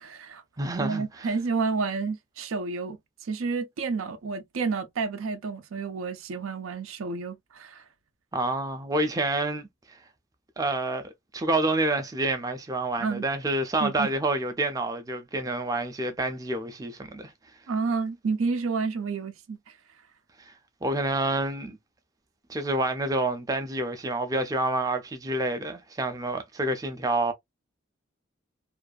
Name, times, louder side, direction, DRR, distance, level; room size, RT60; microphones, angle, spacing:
voice 1, 0.0-0.4 0.8-3.0 3.2-7.8 13.0-13.2 13.8-14.1 17.7-19.7, right 4 dB, 85° right, 0.5 m, -30 dB
voice 2, 0.6-1.3 8.3-9.7 10.6-17.3 20.5-20.6 20.8-21.8 22.5-27.3, right 2 dB, 15° right, 0.4 m, -28 dB
2.5 x 2.3 x 2.3 m
head